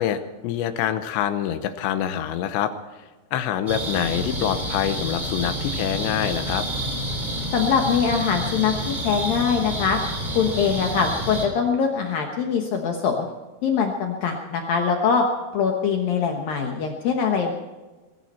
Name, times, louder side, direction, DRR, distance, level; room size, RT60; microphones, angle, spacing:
voice 1, 0.0-2.7 3.3-6.7, left 10 dB, 85° left, 9 dB, 3.2 m, -25 dB
sound 1, 3.7-11.5, right 1 dB, 10° right, 2.6 m, -29 dB
voice 2, 7.5-10.0 10.4-13.3 13.6-15.2 15.5-17.5, left 6 dB, 65° left, 2 dB, 2.6 m, -23 dB
22.0 x 13.5 x 4.3 m, 1.2 s
omnidirectional pair, 5.0 m